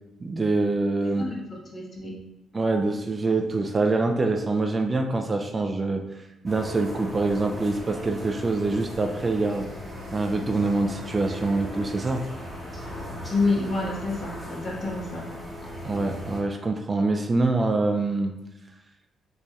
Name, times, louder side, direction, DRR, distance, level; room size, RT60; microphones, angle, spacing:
voice 1, 0.2-1.2 2.5-6.0 6.4-9.7 10.1-12.2 15.8-18.3, right 3 dB, 30° right, 4 dB, 0.3 m, -25 dB
voice 2, 1.0-2.2 13.3-15.2, left 3 dB, 45° left, -3 dB, 1.1 m, -28 dB
sound 1, 6.5-16.4, left 1 dB, ahead, 1.1 m, -38 dB
4.0 x 3.1 x 2.3 m, 0.92 s
cardioid pair, 90°, 0 cm